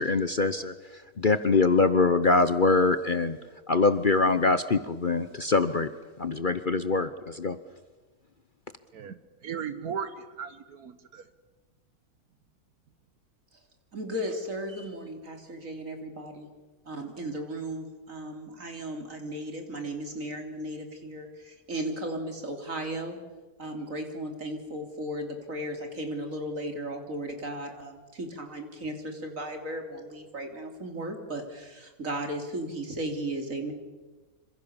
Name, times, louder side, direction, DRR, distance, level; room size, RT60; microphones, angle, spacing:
voice 1, 0.0-3.4 3.7-5.9 6.2-7.6, left 3 dB, 40° left, 11 dB, 0.9 m, -24 dB
voice 2, 8.9-11.3, right 7 dB, 75° right, 11 dB, 1.6 m, -37 dB
voice 3, 13.9-16.5 16.9-23.2 23.6-33.7, right 1 dB, 60° right, 4 dB, 3.7 m, -35 dB
26.5 x 26.5 x 7.1 m, 1.2 s
omnidirectional pair, 1.6 m